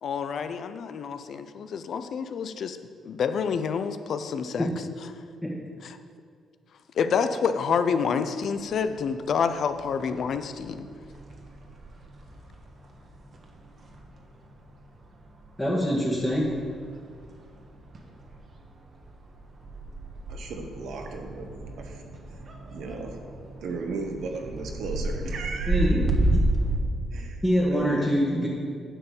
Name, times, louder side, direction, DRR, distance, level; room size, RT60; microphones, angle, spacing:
voice 1, 0.0-2.8 3.1-4.7 5.8-6.0 7.0-10.9, left 6 dB, 60° left, 10 dB, 0.6 m, -28 dB
sound 1, 8.6-26.8, right 1 dB, 45° right, 1.3 m, -33 dB
voice 2, 15.6-16.6 25.7-26.4 27.4-28.5, equal, 10° left, -6 dB, 1.8 m, -25 dB
voice 3, 20.3-21.5 21.8-22.0 22.7-23.2 23.6-26.0 27.1-27.4 27.7-28.1, right 3 dB, 75° right, 3 dB, 1.3 m, -35 dB
10.0 x 4.5 x 7.2 m, 2.2 s
cardioid pair, 90°, 0 cm